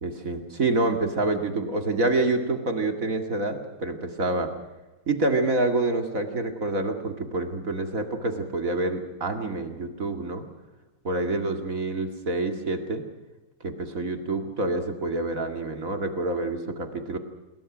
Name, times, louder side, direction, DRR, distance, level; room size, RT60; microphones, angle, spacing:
voice 1, 0.0-4.5 5.1-10.5 11.0-13.0 13.6-17.2, right 2 dB, 40° right, 5 dB, 2.5 m, -27 dB
27.0 x 22.0 x 6.2 m, 1.1 s
omnidirectional pair, 2.2 m